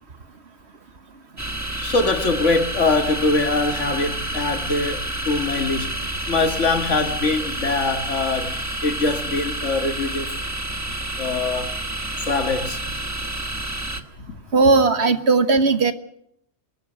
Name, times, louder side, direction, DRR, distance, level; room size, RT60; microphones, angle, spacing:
sound 1, 1.4-14.0, right 1 dB, 15° right, 1.2 m, -29 dB
voice 1, 1.8-5.9 6.3-8.5 8.8-10.3 11.2-11.8 12.3-12.8, left 3 dB, 70° left, 2.0 m, -23 dB
voice 2, 14.5-15.9, right 3 dB, 55° right, 1.5 m, -17 dB
23.0 x 13.0 x 9.8 m
omnidirectional pair, 1.3 m